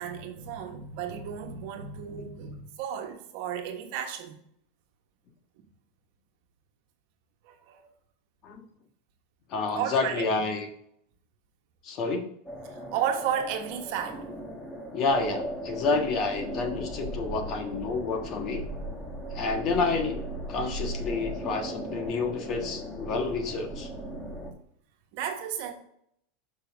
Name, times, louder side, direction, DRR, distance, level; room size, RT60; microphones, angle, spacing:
voice 1, 0.0-4.4 7.4-7.8 9.7-10.3 12.7-14.3 19.8-19.9 23.0-23.1 25.1-25.7, right 8 dB, 60° right, 4 dB, 1.4 m, -33 dB
voice 2, 9.5-10.7 11.8-12.3 14.9-18.7 19.3-23.9, left 4 dB, 40° left, 4 dB, 1.4 m, -29 dB
sound 1, 12.5-24.5, right 1 dB, 10° left, 1.4 m, -37 dB
6.9 x 5.4 x 3.5 m, 0.68 s
supercardioid pair, 135°, 0 cm